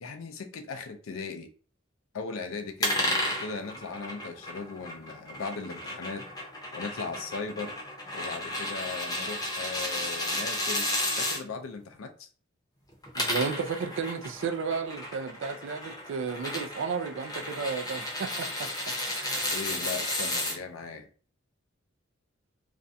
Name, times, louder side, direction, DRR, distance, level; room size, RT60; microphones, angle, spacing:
voice 1, 0.0-1.5 2.1-6.3 6.7-7.7 8.1-10.9 11.2-12.3 19.5-21.1, left 4 dB, 80° left, 0.5 m, -38 dB
sound 1, 2.8-11.4 12.9-20.6, left 1 dB, 20° left, 0.7 m, -33 dB
voice 2, 13.1-18.7 19.1-19.5, right 5 dB, 65° right, 0.4 m, -33 dB
2.5 x 2.1 x 2.6 m
head